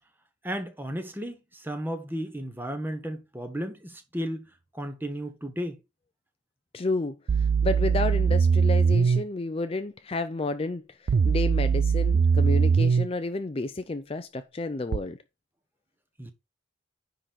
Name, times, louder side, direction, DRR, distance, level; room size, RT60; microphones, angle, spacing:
voice 1, 0.4-4.5 4.7-5.8 16.2-16.3, equal, 10° right, 1.0 m, -34 dB
voice 2, 6.7-15.2, left 2 dB, 30° left, 0.4 m, -31 dB
sound 1, 7.3-9.2 11.1-13.1 14.9-15.0, right 5 dB, 55° right, 0.4 m, -21 dB
9.9 x 3.9 x 4.2 m
head